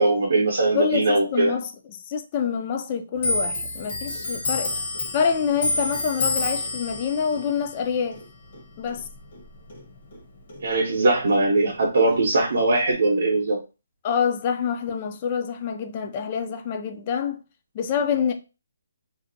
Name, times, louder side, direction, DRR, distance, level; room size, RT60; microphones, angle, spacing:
voice 1, 0.0-1.5 10.6-13.6, right 2 dB, 65° right, 0.7 m, -20 dB
voice 2, 0.7-4.7 5.1-8.2 8.8-9.1 14.0-17.4 17.7-18.3, left 7 dB, 30° left, 0.3 m, -26 dB
Clock, 3.2-10.2 10.5-11.8 12.1-12.9, left 2 dB, 45° left, 0.9 m, -30 dB
2.5 x 2.1 x 2.6 m
hypercardioid pair, 165°, 0 cm